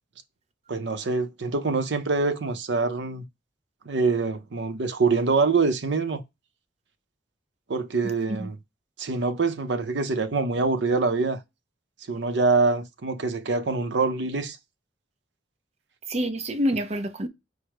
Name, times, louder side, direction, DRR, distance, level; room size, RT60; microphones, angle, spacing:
voice 1, 0.7-3.2 3.9-6.2 7.7-8.6 9.0-11.4 12.1-14.6, right 4 dB, 75° right, 0.7 m, -25 dB
voice 2, 8.0-8.5 16.1-17.3, equal, 35° right, 0.6 m, -28 dB
4.7 x 2.1 x 4.7 m
head